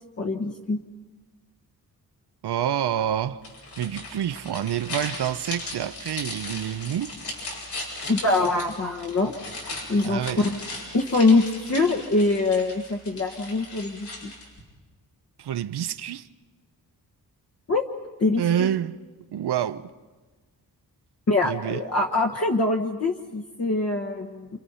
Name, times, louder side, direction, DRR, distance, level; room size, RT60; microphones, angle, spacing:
voice 1, 0.2-0.8 8.0-9.3 9.9-10.6 10.9-14.3 17.7-17.8 18.2-18.7 21.3-24.5, left 3 dB, 40° left, 1.3 m, -24 dB
voice 2, 2.4-3.4 3.8-7.1 10.0-10.5 15.4-16.3 18.4-19.0 19.3-19.9 21.4-21.8, right 10 dB, 85° right, 0.8 m, -27 dB
sound 1, 3.4-14.6, left 2 dB, 85° left, 7.9 m, -37 dB
29.0 x 28.0 x 5.6 m
wide cardioid pair, 140°, 38 cm